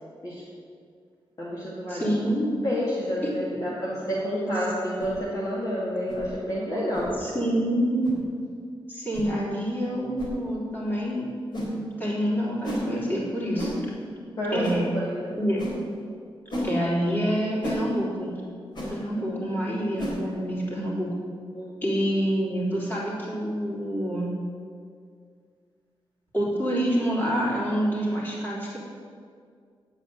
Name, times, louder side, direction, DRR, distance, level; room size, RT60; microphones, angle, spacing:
voice 1, 1.4-2.1 2.6-7.1 14.4-15.4 19.2-19.4 21.6-21.7, equal, 40° left, -6 dB, 2.1 m, -29 dB
voice 2, 1.9-2.5 7.2-8.2 8.9-11.3 12.0-13.7 14.5-14.9 15.4-15.6 16.6-18.3 18.9-21.1 21.8-24.3 26.3-28.8, equal, 20° left, -5 dB, 3.6 m, -27 dB
sound 1, 5.0-5.2 6.1-6.3 6.9-7.1 8.0-8.2 9.1-9.3 10.2-10.3 11.5-11.7 12.6-12.9 13.6-13.8 14.6-14.8 15.6-15.8 16.5-16.7 17.6-17.8 18.7-18.9 20.0-20.2, equal, 55° left, 3.6 m, -32 dB
9.0 x 8.2 x 9.1 m, 2.1 s
wide cardioid pair, 155°, 9 cm